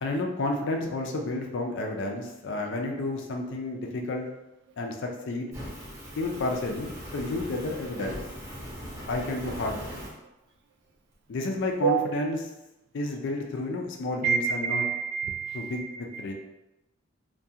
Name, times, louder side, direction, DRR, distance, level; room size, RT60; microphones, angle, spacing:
voice 1, 0.0-4.3 4.8-5.5 6.2-8.2 9.1-9.8 11.3-12.5 12.9-14.8 15.5-16.3, left 2 dB, 60° left, 2 dB, 0.4 m, -31 dB
Fire, 5.5-10.1, equal, 15° right, 0.7 m, -40 dB
voice 2, 14.2-15.8 16.1-16.2, right 7 dB, 55° right, 5 dB, 0.3 m, -27 dB
2.3 x 2.2 x 2.7 m, 0.95 s
head